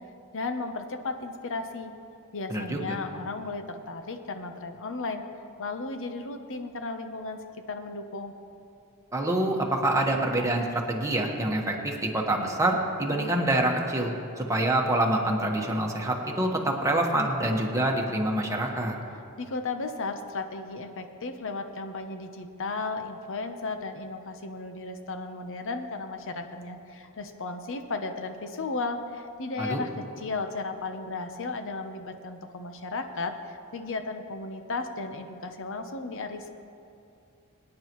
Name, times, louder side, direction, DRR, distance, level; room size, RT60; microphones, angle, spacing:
voice 1, 0.3-1.9 2.3-5.2 5.6-8.3 19.1-29.9 30.2-36.5, left 3 dB, 60° left, 7 dB, 0.9 m, -35 dB
voice 2, 2.5-3.0 9.1-19.0 29.6-29.8, right 1 dB, 15° right, 0 dB, 1.4 m, -26 dB
23.5 x 9.8 x 3.1 m, 2.7 s
head